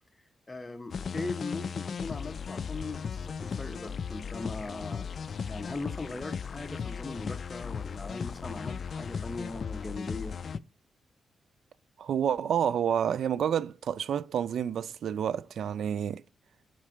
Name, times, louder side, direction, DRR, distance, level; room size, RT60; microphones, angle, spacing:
voice 1, 0.5-5.1 5.5-10.4, left 2 dB, 15° left, 1.1 m, -39 dB
sound 1, 0.9-10.6, left 6 dB, 60° left, 0.4 m, -36 dB
voice 2, 12.0-16.2, right 8 dB, 75° right, 0.3 m, -29 dB
6.2 x 4.3 x 4.9 m
cardioid pair, 85°, 0 cm